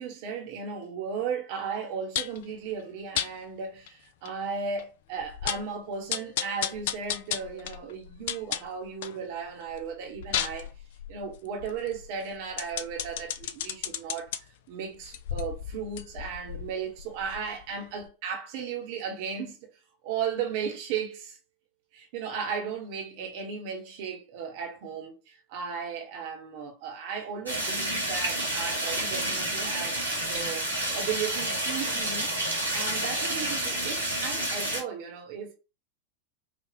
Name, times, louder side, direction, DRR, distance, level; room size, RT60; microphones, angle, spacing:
voice 1, 0.0-10.7 11.1-19.6 20.0-21.4 21.9-30.0 30.3-30.7 30.9-32.3 32.7-35.5, right 6 dB, 45° right, 1.3 m, -35 dB
sound 1, 2.2-2.4 3.2-3.3 3.9-4.0 4.3-4.4 4.8-4.9 5.2-5.7 6.1-9.2 9.6-14.4 15.0-17.7 18.0-18.1, left 10 dB, 55° left, 0.4 m, -34 dB
sound 2, 27.5-34.8, right 1 dB, 85° right, 2.1 m, -29 dB
5.2 x 2.7 x 2.8 m
figure-of-eight pair, 90°, 0 cm